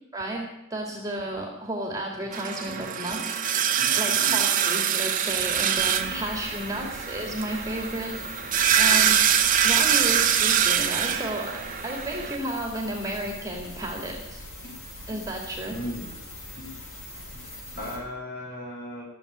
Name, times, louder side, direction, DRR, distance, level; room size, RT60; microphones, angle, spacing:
voice 1, 0.1-3.3 4.0-8.2 8.7-9.2 9.6-11.6 11.8-14.4 15.1-15.8, right 1 dB, 15° right, 0 dB, 2.2 m, -32 dB
sound 1, 2.3-12.4, right 8 dB, 40° right, 1.0 m, -24 dB
voice 2, 2.6-3.1 3.7-4.4 6.0-6.3 6.7-6.9 15.7-16.1 16.5-16.8 17.7-19.1, left 1 dB, 40° left, -2 dB, 6.2 m, -38 dB
sound 2, 5.7-18.0, left 1 dB, 70° left, 6.0 m, -42 dB
14.5 x 7.5 x 10.0 m, 0.87 s
head